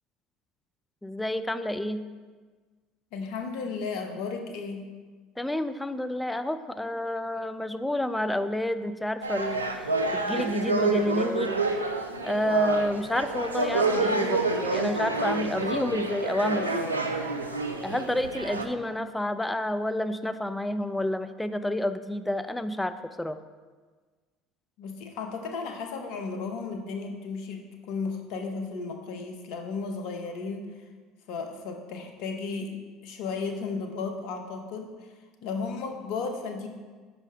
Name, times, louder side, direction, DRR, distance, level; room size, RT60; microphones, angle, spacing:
voice 1, 1.0-2.0 5.4-9.8 10.1-11.5 12.2-17.0 17.8-23.4, left 1 dB, 10° left, 10 dB, 0.3 m, -29 dB
voice 2, 3.1-4.9 24.8-30.7 31.3-32.7 33.0-35.1 35.4-36.7, left 4 dB, 60° left, 4 dB, 0.7 m, -34 dB
sound 1, 9.2-18.7, right 3 dB, 90° right, 0.3 m, -28 dB
5.3 x 5.2 x 3.6 m, 1.4 s
figure-of-eight pair, 65°, 0 cm